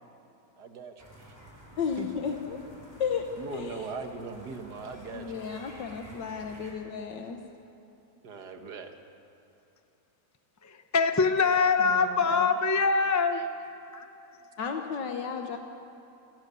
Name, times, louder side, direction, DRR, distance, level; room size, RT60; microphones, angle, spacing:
voice 1, 0.6-1.3 2.0-2.2 3.4-5.3 8.2-8.9 13.3-13.4, right 5 dB, 65° right, 6 dB, 2.1 m, -40 dB
sound 1, 1.0-6.7, right 1 dB, 10° right, 5.3 m, -50 dB
voice 2, 1.8-2.6 3.0-3.9 5.1-7.4 11.9-12.5 14.6-15.6, left 6 dB, 85° left, 4 dB, 1.9 m, -34 dB
voice 3, 10.6-13.4 13.9-14.1, left 4 dB, 15° left, 7 dB, 0.6 m, -24 dB
30.0 x 18.0 x 7.0 m, 2.9 s
omnidirectional pair, 1.9 m